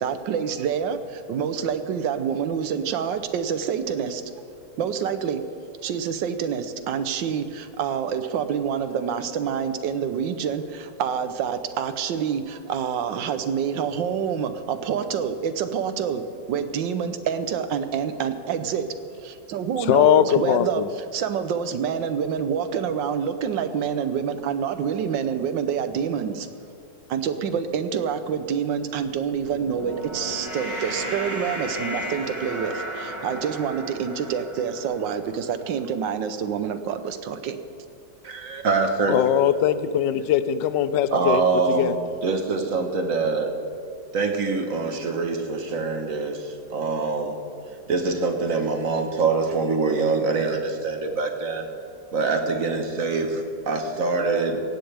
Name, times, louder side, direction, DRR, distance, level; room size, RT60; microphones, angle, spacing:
voice 1, 0.0-4.2 4.8-5.5 5.8-18.9 19.2-20.8 21.1-26.5 27.1-37.6, right 7 dB, 80° right, 1.5 m, -27 dB
voice 2, 19.9-20.9 39.1-41.4 41.7-41.9, left 10 dB, 80° left, 1.3 m, -20 dB
sound 1, 29.2-35.7, equal, 15° right, 2.1 m, -34 dB
voice 3, 38.2-39.2 41.1-42.0 42.2-43.5 44.1-47.4 47.9-51.7 52.1-54.6, right 4 dB, 50° right, 1.5 m, -24 dB
17.5 x 16.0 x 3.4 m
omnidirectional pair, 2.0 m